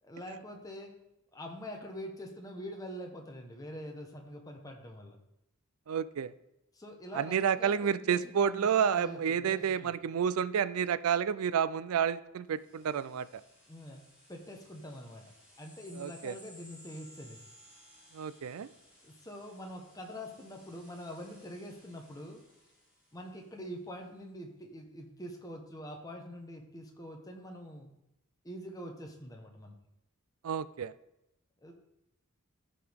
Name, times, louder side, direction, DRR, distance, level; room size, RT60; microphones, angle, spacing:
voice 1, 0.0-0.9 1.3-5.2 6.7-9.9 13.7-14.0 14.3-15.2 15.6-17.4 19.0-22.4 23.1-27.9 28.4-29.7 31.6-31.7, equal, 15° left, 2 dB, 1.1 m, -45 dB
voice 2, 5.9-6.3 7.1-13.4 16.0-16.4 18.1-18.7 30.4-30.9, right 7 dB, 80° right, 16 dB, 0.4 m, -30 dB
sound 1, 12.5-23.6, equal, 5° right, 3.1 m, -59 dB
13.0 x 4.9 x 3.6 m, 0.89 s
head